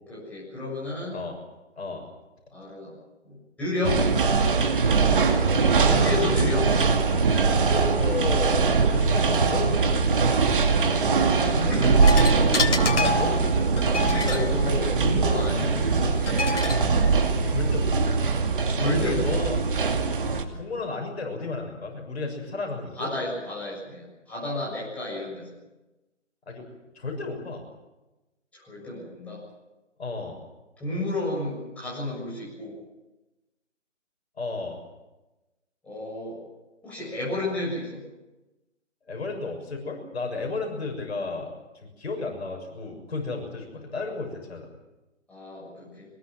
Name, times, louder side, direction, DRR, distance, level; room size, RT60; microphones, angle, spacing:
voice 1, 0.0-1.2 2.5-3.0 3.2-4.0 5.8-6.7 11.4-12.4 14.0-16.5 18.7-19.5 22.9-25.6 28.5-29.5 30.8-32.8 35.8-36.4 36.8-38.0 45.3-46.1, left 2 dB, 5° left, -7 dB, 7.1 m, -31 dB
voice 2, 1.8-2.1 5.7-6.5 7.5-10.1 12.9-13.7 15.5-15.6 17.4-18.1 19.0-19.6 20.5-23.1 26.5-26.7 26.9-27.6 30.0-30.4 34.4-34.8 39.1-41.5 42.0-44.7, left 3 dB, 55° left, 2 dB, 6.8 m, -33 dB
sound 1, 3.8-20.4, right 4 dB, 45° right, 2.5 m, -22 dB
sound 2, 12.0-18.1, left 3 dB, 70° left, 3.3 m, -30 dB
23.5 x 21.5 x 7.7 m, 1.0 s
hypercardioid pair, 165°, 37 cm